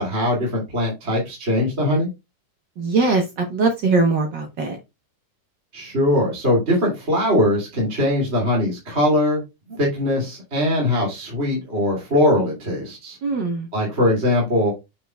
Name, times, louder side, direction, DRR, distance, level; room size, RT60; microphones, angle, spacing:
voice 1, 0.0-2.1 5.7-9.4 9.8-13.2 13.7-14.7, left 1 dB, 20° right, -3 dB, 2.3 m, -21 dB
voice 2, 2.8-4.8 13.2-13.7, right 3 dB, 85° right, 4 dB, 0.9 m, -21 dB
7.4 x 5.6 x 2.2 m, 0.22 s
omnidirectional pair, 3.5 m